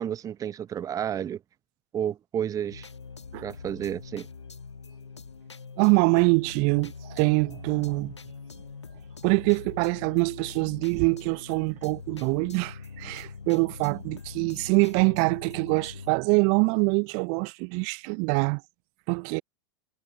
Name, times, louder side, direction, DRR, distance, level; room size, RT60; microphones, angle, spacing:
voice 1, 0.0-1.4 1.9-2.9 3.4-4.3, right 9 dB, 25° right, 1.0 m, -31 dB
sound 1, 2.7-16.2, left 5 dB, 85° left, 0.9 m, -43 dB
voice 2, 5.8-8.1 9.2-18.6 19.1-19.4, right 38 dB, 45° right, 0.7 m, -24 dB
figure-of-eight pair, 95°, 14 cm